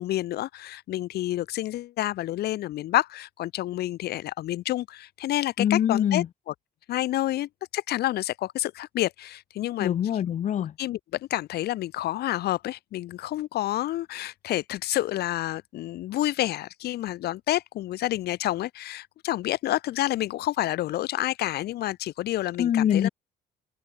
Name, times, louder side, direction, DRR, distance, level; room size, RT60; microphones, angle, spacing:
voice 1, 0.0-6.5 6.9-9.9 10.8-23.1, left 14 dB, 70° left, 1.7 m, -29 dB
voice 2, 5.6-6.3 9.8-10.7 22.6-23.1, left 10 dB, 45° left, 0.9 m, -24 dB
open air
cardioid pair, 110°, 17 cm